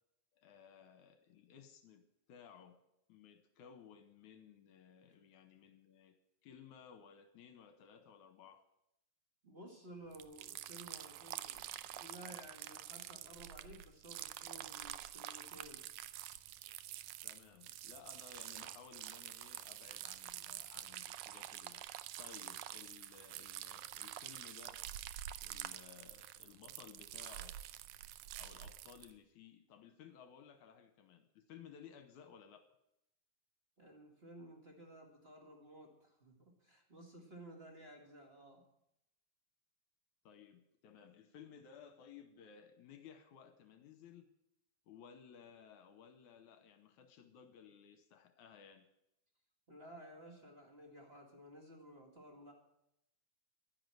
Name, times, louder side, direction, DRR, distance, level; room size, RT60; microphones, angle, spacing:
voice 1, 0.3-2.8 3.1-6.1 6.4-8.6 17.2-24.8 25.4-27.6 28.3-32.7 40.3-44.3 44.9-48.9, left 7 dB, 70° left, 9 dB, 2.2 m, -58 dB
voice 2, 9.4-15.8 33.8-38.6 49.7-52.5, right 1 dB, 25° right, 1 dB, 1.6 m, -55 dB
sound 1, 10.1-29.1, right 13 dB, 80° right, 1.8 m, -48 dB
12.0 x 10.5 x 7.7 m, 0.81 s
omnidirectional pair, 3.9 m